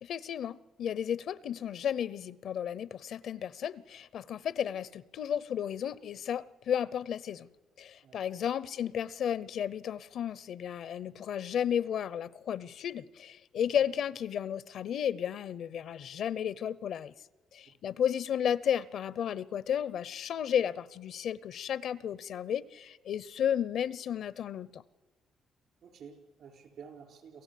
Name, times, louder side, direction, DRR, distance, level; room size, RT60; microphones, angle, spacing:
voice 1, 0.0-7.5 7.8-17.1 17.5-24.8, left 9 dB, 70° left, 0.6 m, -33 dB
voice 2, 25.8-27.4, right 6 dB, 70° right, 4.6 m, -51 dB
27.5 x 15.0 x 8.4 m
cardioid pair, 90°, 0 cm